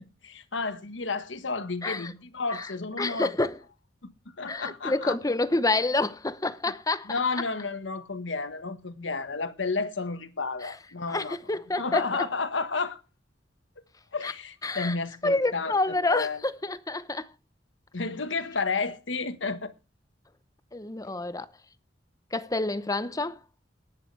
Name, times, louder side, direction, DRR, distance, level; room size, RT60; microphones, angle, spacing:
voice 1, 0.0-3.3 4.0-4.1 4.4-5.2 7.1-11.4 11.8-13.0 14.1-16.4 17.9-19.7, left 4 dB, 90° left, 1.4 m, -31 dB
voice 2, 1.8-2.1 2.6-2.7 3.0-3.6 4.5-7.1 10.6-10.8 11.1-12.3 14.2-14.3 14.6-15.0 15.2-17.3 20.7-21.5 22.3-23.4, left 2 dB, 20° left, 0.8 m, -28 dB
19.0 x 11.0 x 3.3 m
head